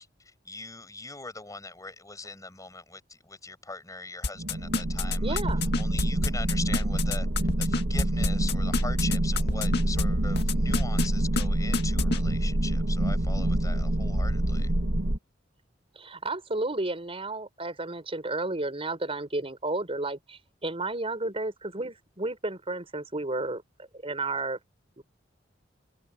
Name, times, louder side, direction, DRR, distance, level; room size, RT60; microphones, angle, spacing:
voice 1, 0.0-5.4 5.8-14.7, left 3 dB, 20° left, 6.3 m, -41 dB
sound 1, 4.2-10.0 10.3-11.1 11.4-11.5 11.7-12.2, left 3 dB, 60° left, 2.2 m, -27 dB
sound 2, 4.4-15.2, right 1 dB, 70° right, 2.0 m, -26 dB
voice 2, 5.2-5.7 15.9-23.6 24.0-24.6 25.0-25.1, right 2 dB, 30° right, 4.6 m, -32 dB
head